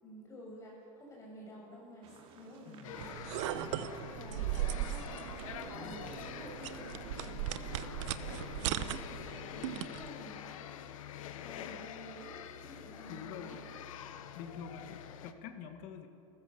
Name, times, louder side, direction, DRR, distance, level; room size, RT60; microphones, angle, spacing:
voice 1, 0.0-10.7 11.4-13.6, equal, 15° left, -2 dB, 7.0 m, -51 dB
sound 1, 2.0-7.8, right 5 dB, 35° right, 2.7 m, -54 dB
voice 2, 2.7-3.0 5.7-6.2 13.1-13.7 14.3-16.1, left 7 dB, 50° left, 6 dB, 1.8 m, -47 dB
sound 2, 2.8-15.3, left 9 dB, 90° left, 1.4 m, -46 dB
sound 3, 3.0-10.1, right 12 dB, 65° right, 1.0 m, -38 dB
30.0 x 14.5 x 7.0 m, 2.9 s
supercardioid pair, 155°, 17 cm